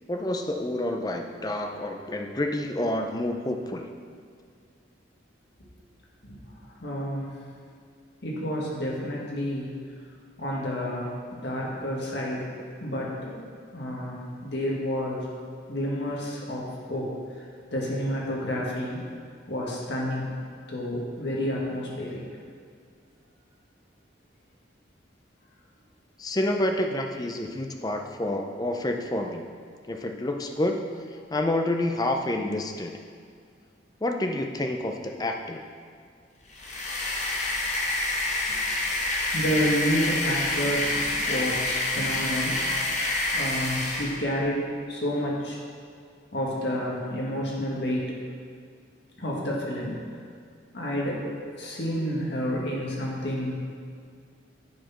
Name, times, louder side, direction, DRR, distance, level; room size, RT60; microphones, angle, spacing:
voice 1, 0.1-3.9 26.2-29.4 29.9-30.8 31.3-33.0 34.0-35.6, left 1 dB, 20° left, 4 dB, 0.5 m, -28 dB
voice 2, 6.8-7.3 8.2-9.7 10.4-12.5 12.8-15.3 15.7-17.1 17.7-19.0 19.5-20.3 20.7-22.2 39.3-42.6 43.3-45.6 46.3-48.1 49.2-50.0 50.7-53.7, equal, 70° left, -4 dB, 1.8 m, -30 dB
sound 1, 36.5-44.2, left 2 dB, 40° left, 1.0 m, -27 dB
9.4 x 4.4 x 5.8 m, 2.1 s
head